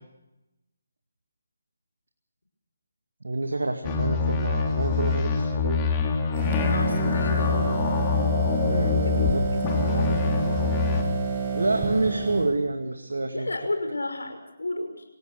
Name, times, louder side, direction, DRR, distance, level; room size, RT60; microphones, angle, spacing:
voice 1, 3.2-5.8 8.6-9.4 11.5-13.5, right 2 dB, 75° right, 6 dB, 2.2 m, -28 dB
sound 1, 3.8-9.3 9.6-11.0, left 5 dB, 20° left, 3.3 m, -25 dB
sound 2, 6.3-12.6, right 5 dB, 30° right, 6.1 m, -29 dB
voice 2, 6.7-7.9 9.0-10.3 13.3-15.0, left 2 dB, 80° left, 6 dB, 6.0 m, -33 dB
28.0 x 17.0 x 6.6 m, 0.95 s
figure-of-eight pair, 150°, 0 cm